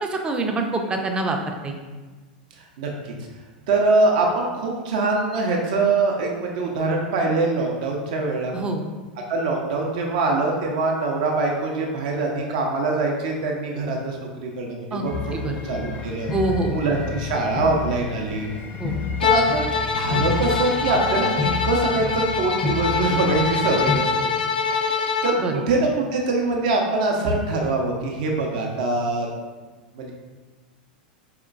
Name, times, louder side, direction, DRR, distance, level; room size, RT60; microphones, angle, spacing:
voice 1, 0.0-1.7 8.5-8.8 14.9-15.0 15.3-15.6 16.3-16.8 18.8-18.9 25.4-25.6, right 3 dB, 20° right, 3 dB, 0.5 m, -25 dB
voice 2, 2.8-3.1 3.7-8.5 9.3-16.3 16.7-18.5 19.2-19.7 19.9-21.3 21.6-24.3 24.7-29.3 29.9-30.1, right 3 dB, 60° right, 0 dB, 0.6 m, -23 dB
sound 1, 15.1-24.0, left 4 dB, 35° left, 0.5 m, -30 dB
Bowed string instrument, 19.2-25.4, left 5 dB, 85° left, 0.3 m, -24 dB
4.3 x 2.8 x 2.4 m, 1.3 s
hypercardioid pair, 95°, 5 cm